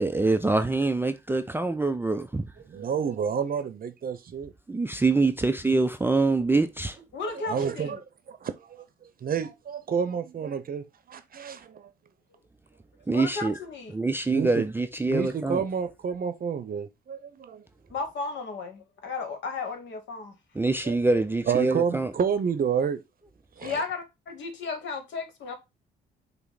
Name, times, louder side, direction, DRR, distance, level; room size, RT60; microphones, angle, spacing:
voice 1, 0.0-2.5 4.7-7.0 13.1-13.6 13.9-15.6 20.6-22.1, right 3 dB, 10° right, 0.4 m, -25 dB
voice 2, 2.6-4.5 7.5-8.0 8.3-11.9 14.3-14.7 15.1-17.6 20.8-21.0 21.5-23.0 23.6-23.8, right 7 dB, 45° right, 0.7 m, -29 dB
voice 3, 7.1-8.0 13.1-14.0 17.9-20.4 23.6-25.5, left 4 dB, 65° left, 1.2 m, -34 dB
5.7 x 2.1 x 3.9 m
supercardioid pair, 60°, 21 cm